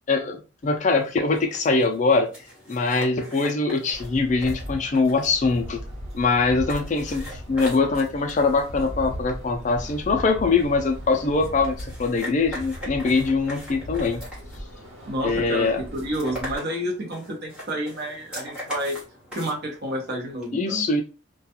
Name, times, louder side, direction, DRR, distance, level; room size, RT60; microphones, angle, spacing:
voice 1, 0.1-2.3 2.7-5.8 6.1-14.2 15.2-15.8 20.5-21.0, left 3 dB, 35° left, 4 dB, 0.3 m, -23 dB
sound 1, 0.6-20.5, equal, 5° right, 1.0 m, -42 dB
sound 2, 3.9-16.6, equal, 80° right, 1.1 m, -38 dB
voice 2, 15.1-19.0 19.3-20.9, equal, 50° right, 0 dB, 0.9 m, -30 dB
2.3 x 2.2 x 2.8 m, 0.33 s
head